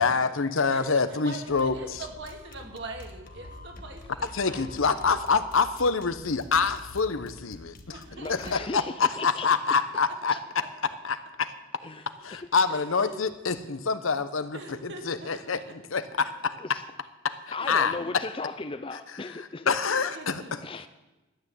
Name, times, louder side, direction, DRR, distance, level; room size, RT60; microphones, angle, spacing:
voice 1, 0.0-1.7 4.3-8.0 8.3-10.4 11.0-11.5 12.2-16.6 17.2-17.9 19.7-20.6, left 5 dB, 80° left, 0.9 m, -26 dB
voice 2, 0.7-4.8 7.9-8.5 12.1-12.2 12.7-13.2 14.5-15.6 17.6-18.1 19.8-20.5, right 2 dB, 55° right, 2.4 m, -42 dB
sound 1, 1.5-8.5, left 1 dB, 45° left, 1.3 m, -47 dB
voice 3, 8.1-9.8 10.3-10.4 11.8-12.1 12.3-12.5 16.6-16.8 17.5-19.7 20.6-20.9, left 3 dB, 25° left, 0.5 m, -37 dB
13.0 x 9.7 x 7.8 m
head